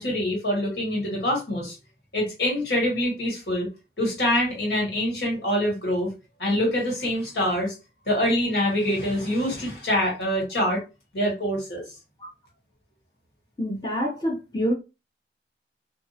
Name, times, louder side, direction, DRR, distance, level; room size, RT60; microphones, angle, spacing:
voice 1, 0.0-1.7 2.1-3.7 4.0-6.1 6.4-7.7 8.1-10.8 11.1-11.8, equal, 70° left, 1.6 m, -25 dB
voice 2, 13.6-14.7, equal, 25° left, 0.8 m, -26 dB
2.6 x 2.4 x 2.7 m
head